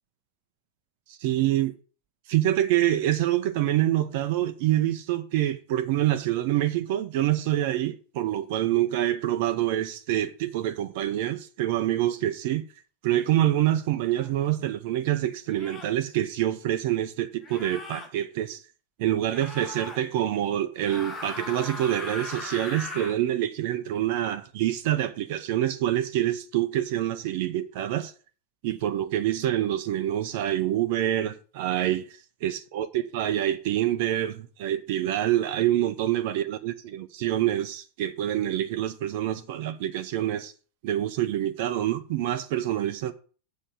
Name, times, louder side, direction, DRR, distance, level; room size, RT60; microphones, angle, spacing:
voice 1, 1.1-1.7 2.3-12.7 13.0-18.6 19.0-28.1 28.6-32.1 32.4-40.5 40.8-43.1, right 13 dB, 50° right, 0.9 m, -26 dB
sound 1, 14.1-14.3 15.5-16.0 17.4-18.1 19.3-20.0 20.8-23.2, left 2 dB, 20° left, 2.6 m, -38 dB
7.7 x 6.4 x 8.0 m
figure-of-eight pair, 90°, 0 cm